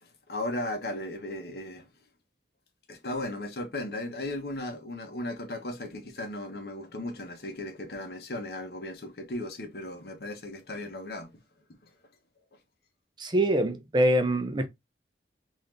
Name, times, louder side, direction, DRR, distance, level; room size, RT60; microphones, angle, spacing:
voice 1, 0.0-1.9 2.9-11.3 11.8-11.9, left 1 dB, 55° left, 0.9 m, -36 dB
voice 2, 13.2-14.7, right 1 dB, 25° right, 0.5 m, -24 dB
3.9 x 2.6 x 3.2 m
head